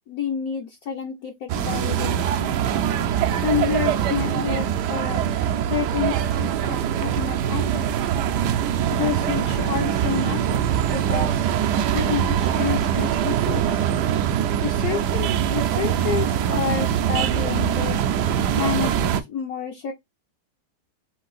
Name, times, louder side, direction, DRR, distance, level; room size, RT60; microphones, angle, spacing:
voice 1, 0.0-2.5 3.4-5.3 5.7-7.9 8.9-11.4 11.9-13.8 14.6-18.1 18.6-19.9, left 8 dB, 75° left, 0.8 m, -29 dB
sound 1, 1.5-19.2, right 9 dB, 85° right, 0.9 m, -23 dB
4.7 x 2.6 x 3.8 m
omnidirectional pair, 2.4 m